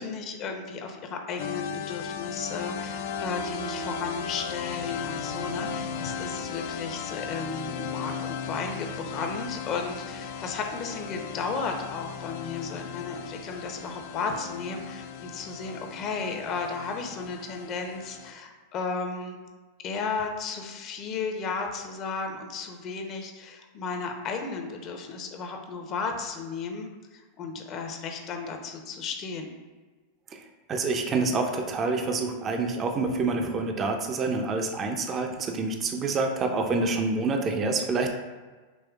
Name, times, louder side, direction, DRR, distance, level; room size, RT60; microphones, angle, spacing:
voice 1, 0.0-19.4 19.8-29.5, left 4 dB, 45° left, 4 dB, 0.7 m, -34 dB
sound 1, 1.4-18.3, left 6 dB, 65° left, 0.3 m, -36 dB
voice 2, 30.7-38.1, right 3 dB, 30° right, 4 dB, 0.5 m, -27 dB
5.2 x 3.0 x 2.3 m, 1.4 s
hypercardioid pair, 105°, 0 cm